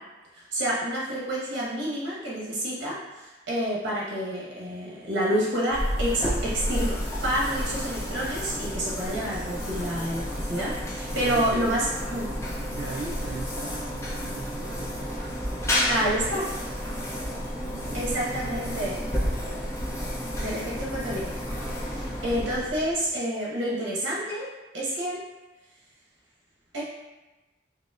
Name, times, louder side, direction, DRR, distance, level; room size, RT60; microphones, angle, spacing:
voice 1, 0.3-6.9 7.2-12.3 15.9-16.5 17.9-19.0 20.4-21.5 21.8-24.5 24.7-25.2 26.7-26.8, equal, 80° right, -6 dB, 1.1 m, -29 dB
sound 1, 5.7-23.1, equal, 15° left, 0.5 m, -31 dB
voice 2, 11.2-11.7 12.7-15.4 17.6-20.0, right 3 dB, 60° right, -3 dB, 0.3 m, -40 dB
4.9 x 2.0 x 2.4 m, 1.1 s
head